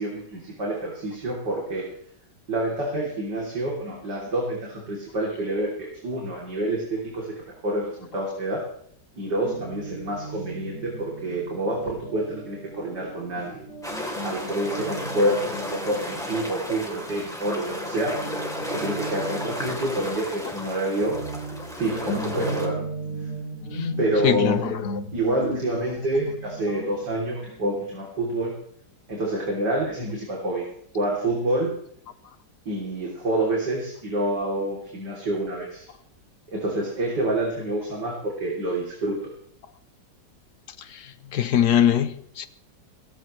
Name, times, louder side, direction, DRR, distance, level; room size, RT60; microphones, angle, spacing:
voice 1, 0.0-1.9 2.5-7.3 7.6-8.6 9.2-13.6 14.2-18.1 18.7-21.2 21.8-22.8 24.0-24.6 25.1-28.5 29.1-30.7 30.9-31.7 32.7-35.9 36.5-39.2, right 1 dB, 70° right, 4.0 m, -27 dB
Guitar, 9.4-17.1 17.4-27.9, right 1 dB, 90° left, 5.8 m, -36 dB
sound 1, 13.8-22.7, left 1 dB, ahead, 3.4 m, -33 dB
voice 2, 24.2-24.9 41.3-42.5, left 10 dB, 65° left, 1.5 m, -22 dB
18.5 x 16.0 x 3.3 m
omnidirectional pair, 1.9 m